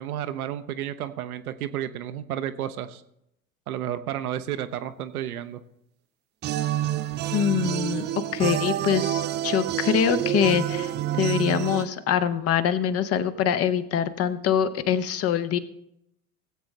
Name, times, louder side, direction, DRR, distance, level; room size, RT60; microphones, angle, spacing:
voice 1, 0.0-3.0 3.7-5.6, right 11 dB, 70° right, 10 dB, 0.8 m, -32 dB
sound 1, 6.4-11.9, right 12 dB, 25° right, 0.4 m, -27 dB
voice 2, 7.3-8.0 8.3-15.6, left 9 dB, 30° left, 12 dB, 0.8 m, -24 dB
18.0 x 7.9 x 3.2 m, 0.78 s
figure-of-eight pair, 80°, 46 cm